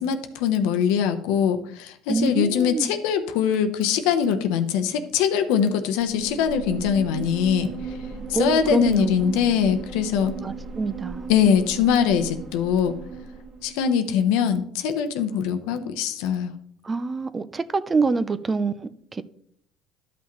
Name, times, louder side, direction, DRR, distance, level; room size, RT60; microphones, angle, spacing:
voice 1, 0.0-7.7 8.3-10.3 11.3-13.0 13.6-16.5, left 8 dB, 80° left, 0.8 m, -22 dB
voice 2, 2.1-2.9 8.3-9.4 10.4-11.3 16.8-19.2, right 4 dB, 25° right, 0.5 m, -26 dB
sound 1, 6.0-13.8, right 5 dB, 55° right, 1.6 m, -36 dB
12.0 x 5.9 x 3.1 m
supercardioid pair, 85°, 0 cm